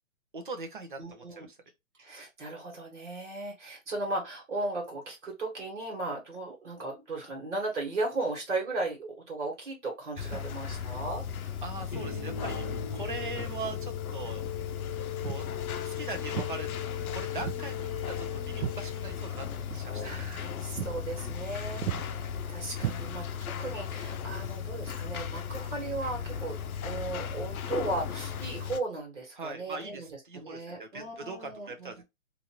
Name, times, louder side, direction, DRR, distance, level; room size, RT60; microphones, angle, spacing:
voice 1, 0.3-1.6 10.2-10.9 11.6-14.4 15.2-15.5 15.8-16.8 17.1-20.5 29.4-32.0, right 3 dB, 35° right, 0.6 m, -41 dB
voice 2, 1.0-1.5 2.0-11.5 19.7-26.6 26.8-32.0, right 2 dB, 55° right, 1.5 m, -36 dB
sound 1, 10.2-28.8, left 7 dB, 75° left, 0.6 m, -36 dB
sound 2, 11.9-19.8, left 9 dB, 30° left, 0.8 m, -40 dB
Walk footsteps, 15.2-15.5 16.3-16.6 17.4-17.7 18.0-19.4 19.7-19.9 20.3-20.5 20.8-21.0 21.3-21.5 21.8-22.0 22.8-23.5, right 10 dB, 75° right, 0.6 m, -35 dB
2.7 x 2.6 x 2.8 m
hypercardioid pair, 175°, 43 cm